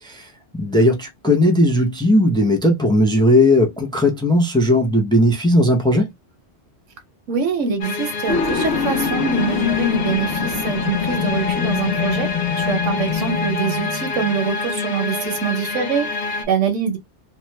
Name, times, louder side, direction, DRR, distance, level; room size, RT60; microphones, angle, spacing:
voice 1, 0.0-6.1, left 1 dB, 5° left, 0.4 m, -17 dB
voice 2, 7.3-12.3 12.6-17.0, right 6 dB, 85° right, 1.2 m, -24 dB
sound 1, 7.8-16.5, left 3 dB, 60° left, 0.8 m, -27 dB
sound 2, 8.3-14.3, left 8 dB, 80° left, 1.1 m, -24 dB
3.0 x 2.2 x 3.1 m
omnidirectional pair, 1.2 m